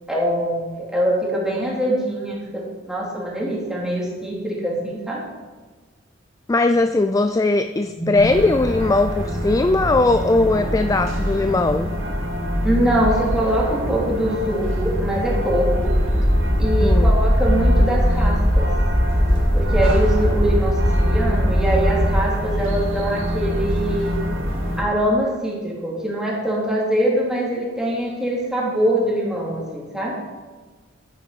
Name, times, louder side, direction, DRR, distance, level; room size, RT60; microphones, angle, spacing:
voice 1, 0.1-5.2 8.0-8.1 12.6-15.9 16.6-18.7 19.5-24.2 24.8-30.2, right 1 dB, 5° right, -5 dB, 2.9 m, -23 dB
voice 2, 6.5-11.9 16.8-17.2, left 2 dB, 15° left, 9 dB, 0.3 m, -19 dB
sound 1, 8.1-24.8, equal, 85° right, 2.1 m, -25 dB
sound 2, 15.7-22.2, equal, 45° right, 3.3 m, -19 dB
11.0 x 9.4 x 4.9 m, 1.3 s
head